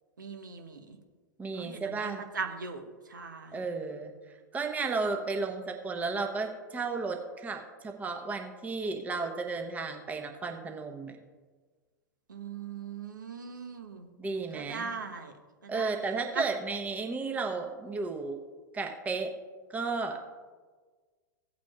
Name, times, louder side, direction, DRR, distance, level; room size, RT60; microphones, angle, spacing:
voice 1, 0.2-1.0 1.6-2.8 3.1-3.6 12.3-14.1 14.5-15.3 15.7-15.9 16.3-16.4, right 5 dB, 70° right, 5 dB, 1.0 m, -39 dB
voice 2, 1.4-2.2 3.5-4.1 4.5-11.2 14.2-14.9 15.7-18.4 18.7-19.3 19.7-20.2, right 4 dB, 15° right, 4 dB, 0.9 m, -33 dB
16.5 x 8.6 x 2.4 m, 1.4 s
figure-of-eight pair, 95°, 11 cm